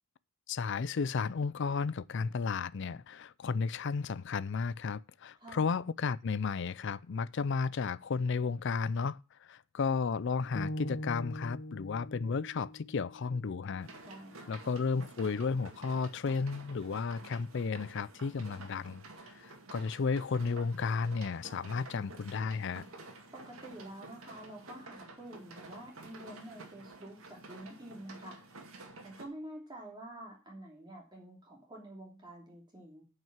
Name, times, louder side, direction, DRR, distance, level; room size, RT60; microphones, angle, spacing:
voice 1, 0.5-13.9 14.5-19.0 19.4-22.9, left 5 dB, 55° left, 0.4 m, -33 dB
sound 1, 10.5-14.7, equal, 35° left, 1.1 m, -43 dB
sound 2, 13.8-29.2, right 2 dB, 70° right, 2.2 m, -51 dB
voice 2, 14.0-14.6 23.3-28.4 29.0-33.0, right 1 dB, 20° right, 2.9 m, -48 dB
9.1 x 5.6 x 7.3 m
head